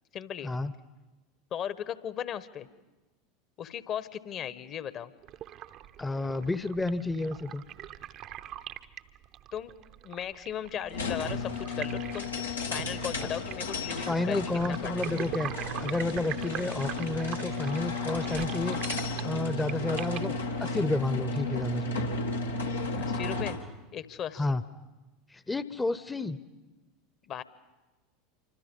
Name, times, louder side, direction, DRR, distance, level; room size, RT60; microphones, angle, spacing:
voice 1, 0.1-0.5 1.5-2.7 3.6-5.1 9.5-9.7 10.0-12.3 12.7-14.4 14.8-15.2 23.0-23.6 23.9-24.6 27.2-27.4, left 9 dB, 40° left, 15 dB, 1.2 m, -37 dB
sound 1, 5.2-20.5, right 12 dB, 45° right, 0.8 m, -43 dB
voice 2, 6.0-7.6 13.2-13.3 14.1-15.5 15.8-18.8 19.2-20.3 20.6-22.1 24.4-24.6 25.3-26.4, left 2 dB, 10° left, 14 dB, 0.8 m, -31 dB
sound 2, 10.9-23.7, left 3 dB, 85° left, 1.7 m, -33 dB
sound 3, 11.0-12.3 12.6-13.9 14.6-15.0 15.7-16.9 17.6-17.7 18.1-18.6, right 4 dB, 85° right, 1.6 m, -52 dB
27.5 x 25.0 x 5.5 m, 1.1 s
figure-of-eight pair, 80°, 0 cm